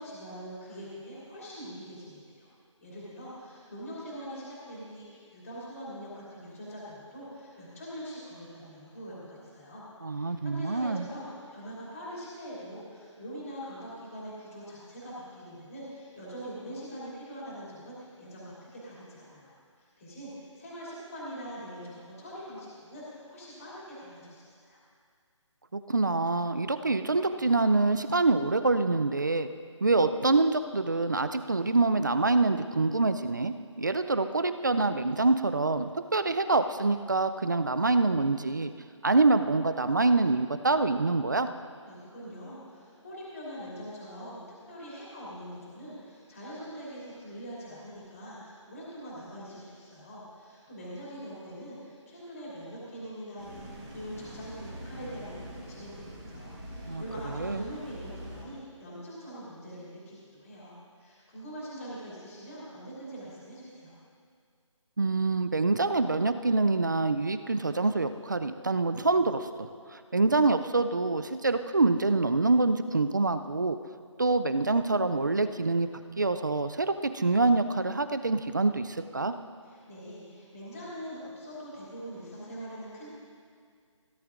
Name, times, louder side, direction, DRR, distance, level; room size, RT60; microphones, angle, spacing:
voice 1, 0.0-2.5 2.8-9.8 10.1-24.8 41.8-44.4 44.7-63.9 79.6-83.1, equal, 30° left, -8 dB, 2.7 m, -43 dB
voice 2, 10.0-11.1 25.7-29.5 29.8-38.7 39.0-41.5 56.9-57.6 65.0-69.5 69.9-73.8 74.2-75.9 76.2-79.3, right 3 dB, 40° right, 10 dB, 0.4 m, -26 dB
sound 1, 53.4-58.4, equal, 10° right, 1.4 m, -43 dB
17.0 x 11.0 x 2.5 m, 2.2 s
hypercardioid pair, 175°, 16 cm